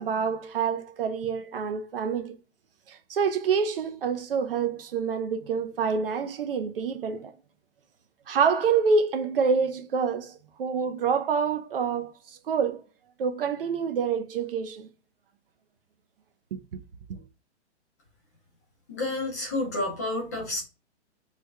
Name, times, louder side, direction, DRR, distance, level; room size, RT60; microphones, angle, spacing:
voice 1, 0.0-2.4 2.9-7.3 8.3-12.8 13.2-14.9 16.5-16.8 17.1-17.2, right 5 dB, 55° right, 0.5 m, -27 dB
voice 2, 18.9-20.6, left 2 dB, 15° left, 0.4 m, -30 dB
3.2 x 2.1 x 3.4 m
hypercardioid pair, 165°, 35 cm